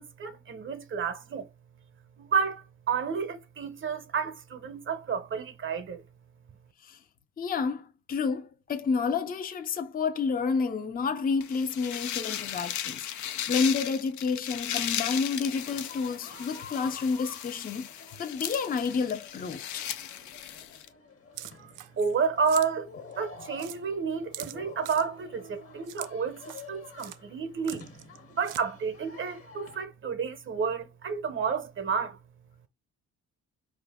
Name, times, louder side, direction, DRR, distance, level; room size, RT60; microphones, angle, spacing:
voice 1, 0.0-1.5 2.2-6.0 21.5-27.9 28.3-32.2, right 6 dB, 40° right, 0.7 m, -31 dB
voice 2, 7.4-19.8, left 5 dB, 30° left, 0.6 m, -30 dB
sound 1, 11.4-20.9, left 10 dB, 75° left, 0.5 m, -36 dB
sound 2, 15.3-29.9, left 4 dB, 50° left, 1.2 m, -49 dB
sound 3, 21.4-22.2 22.4-22.7 23.1-23.2 23.6-23.8 24.3-25.0 25.9-26.1 26.4-26.7 27.0-27.2 27.6-28.2 28.4-28.6, right 14 dB, 80° right, 0.5 m, -42 dB
4.8 x 2.5 x 3.4 m
cardioid pair, 90°, 30 cm